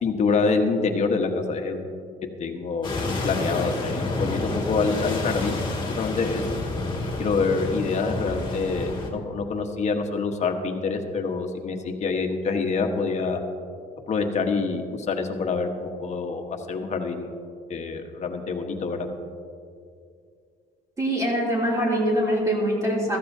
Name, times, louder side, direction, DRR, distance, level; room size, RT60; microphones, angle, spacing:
voice 1, 0.0-1.9 2.4-2.9 3.2-6.6 7.2-13.4 14.1-17.3 17.7-19.1, left 4 dB, 45° left, 4 dB, 1.3 m, -26 dB
sound 1, 2.8-9.1, left 2 dB, 30° left, 2.4 m, -29 dB
voice 2, 21.0-23.2, equal, 20° right, -3 dB, 2.9 m, -23 dB
15.0 x 13.5 x 2.8 m, 2.4 s
cardioid pair, 110°, 17 cm